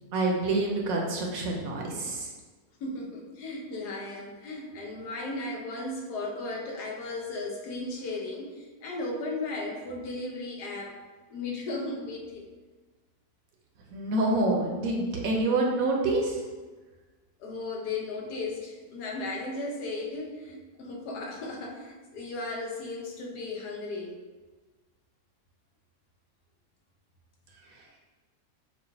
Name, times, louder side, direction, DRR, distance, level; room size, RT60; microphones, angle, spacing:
voice 1, 0.1-2.3 13.9-16.5 27.7-28.0, right 2 dB, 70° right, 0 dB, 1.0 m, -27 dB
voice 2, 2.8-11.0 11.3-12.5 17.4-24.2, left 2 dB, 80° left, 0 dB, 1.3 m, -36 dB
6.5 x 2.4 x 2.7 m, 1.3 s
omnidirectional pair, 1.7 m